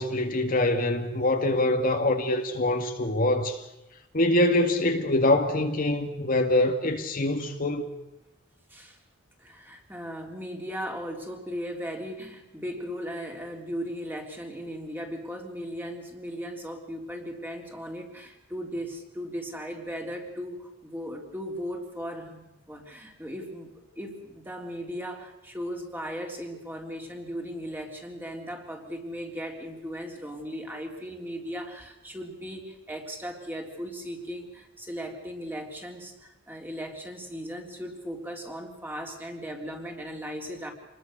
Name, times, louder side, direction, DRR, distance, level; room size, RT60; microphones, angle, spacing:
voice 1, 0.0-3.6 4.1-7.9, left 1 dB, 45° left, 1.9 m, -24 dB
voice 2, 9.4-40.7, equal, 10° right, 3.5 m, -37 dB
28.0 x 21.0 x 6.7 m
head